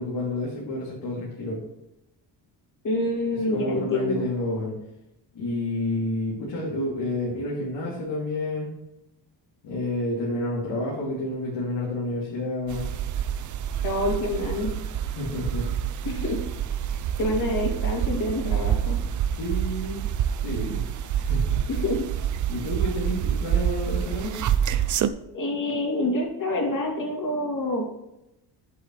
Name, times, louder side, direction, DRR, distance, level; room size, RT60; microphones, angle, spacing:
voice 1, 0.0-1.6 3.5-4.7 5.3-8.7 9.6-12.9 15.1-15.6 19.4-20.0 20.4-20.8 21.1-21.6 22.5-24.3, left 1 dB, 75° left, -6 dB, 2.9 m, -29 dB
voice 2, 2.8-4.3 13.8-14.7 16.0-16.4 17.2-19.0 21.7-22.0 25.3-27.8, left 1 dB, 50° left, -1 dB, 2.9 m, -27 dB
sound 1, 12.7-25.1, right 9 dB, 45° right, 0.5 m, -27 dB
8.4 x 7.2 x 3.2 m, 0.90 s
cardioid pair, 110°, 42 cm